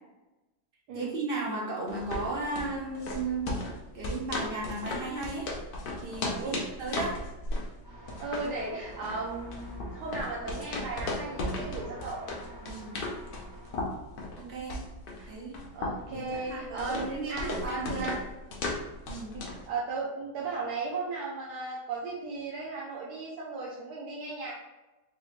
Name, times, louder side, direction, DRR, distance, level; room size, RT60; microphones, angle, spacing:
voice 1, 0.9-3.5 3.9-5.5 6.0-7.2 12.6-13.0 14.4-14.8 15.3-15.6 16.1-18.2 19.1-19.5, right 3 dB, 55° right, -3 dB, 0.6 m, -35 dB
sound 1, 1.9-19.7, left 2 dB, 65° left, 0.5 m, -36 dB
sound 2, 7.8-13.8, equal, 20° left, 1.0 m, -48 dB
voice 2, 8.2-12.2 14.4-14.6 15.2-15.3 15.7-18.2 19.3-24.5, right 3 dB, 85° right, -5 dB, 1.2 m, -36 dB
4.1 x 3.1 x 2.4 m, 1.0 s
omnidirectional pair, 1.7 m